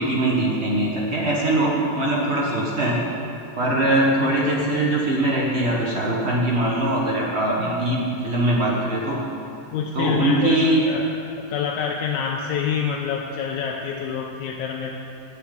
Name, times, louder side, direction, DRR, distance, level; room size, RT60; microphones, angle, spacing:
voice 1, 0.0-3.0 3.6-9.2 9.9-10.8, right 1 dB, 55° right, -3 dB, 0.7 m, -22 dB
voice 2, 9.7-11.1 11.5-15.0, left 6 dB, 80° left, 0 dB, 2.0 m, -26 dB
9.2 x 7.0 x 8.2 m, 2.8 s
omnidirectional pair, 3.3 m